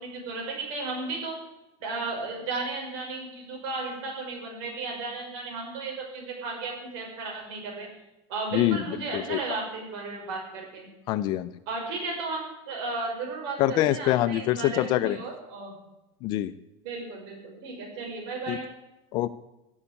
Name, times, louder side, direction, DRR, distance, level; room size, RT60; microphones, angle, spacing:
voice 1, 0.0-1.4 1.8-7.9 8.3-10.9 11.7-15.7 16.8-18.7, right 3 dB, 50° right, 0 dB, 5.8 m, -34 dB
voice 2, 8.5-8.8 9.1-9.4 11.1-11.5 13.6-15.2 16.2-16.5 18.5-18.6 19.1-19.3, left 14 dB, 30° left, 14 dB, 0.4 m, -24 dB
16.0 x 7.2 x 9.6 m, 0.94 s
supercardioid pair, 180°, 15 cm